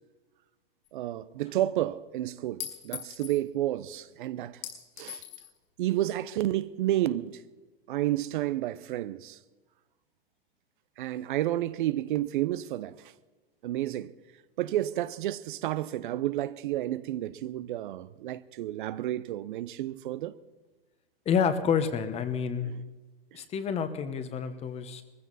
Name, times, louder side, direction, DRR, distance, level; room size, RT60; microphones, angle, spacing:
Chink clink, 0.9-1.0 2.6-3.4 4.6-5.5, left 11 dB, 60° left, 5.1 m, -40 dB
voice 1, 0.9-4.6 5.0-5.2 5.8-7.4 7.9-9.4 11.0-13.1 13.6-14.1 14.6-20.4 23.3-23.4, right 14 dB, 60° right, 0.7 m, -31 dB
voice 2, 21.2-22.7 23.3-25.0, left 7 dB, 20° left, 1.1 m, -28 dB
20.0 x 15.0 x 4.1 m
hypercardioid pair, 130°, 29 cm